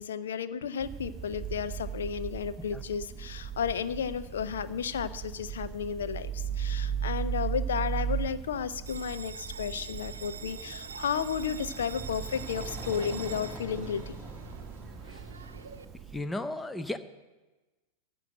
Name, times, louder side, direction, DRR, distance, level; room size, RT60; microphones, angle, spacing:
voice 1, 0.0-14.2, left 7 dB, 65° left, 13 dB, 0.6 m, -33 dB
sound 1, 0.8-16.2, right 8 dB, 25° right, 0.7 m, -37 dB
Bell, 8.9-15.9, right 6 dB, 70° right, 0.6 m, -45 dB
sound 2, 10.2-16.2, equal, 10° right, 1.5 m, -46 dB
voice 2, 16.1-17.0, left 2 dB, 10° left, 11 dB, 0.7 m, -35 dB
14.5 x 6.3 x 7.8 m, 1.2 s
figure-of-eight pair, 90°, 0 cm